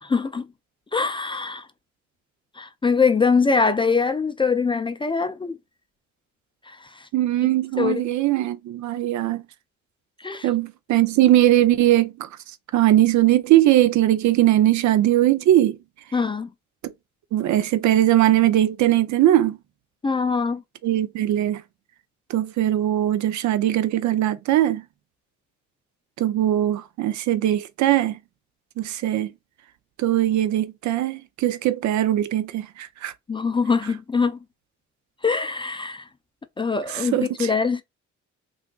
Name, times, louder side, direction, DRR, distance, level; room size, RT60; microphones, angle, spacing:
voice 1, 0.0-0.5 0.9-1.7 2.6-5.5 6.7-7.1 7.8-8.0 10.2-10.5 16.1-16.5 20.0-20.6 33.3-34.4 35.2-36.0 36.6-37.8, left 5 dB, 15° left, 0.3 m, -23 dB
voice 2, 7.1-9.4 10.4-12.3 12.7-15.8 16.8-16.9 17.3-19.6 20.8-21.6 22.3-24.8 26.2-28.2 28.8-29.3 30.0-33.1 36.9-37.5, right 13 dB, 70° right, 0.5 m, -20 dB
3.5 x 2.5 x 2.3 m
cardioid pair, 90°, 30 cm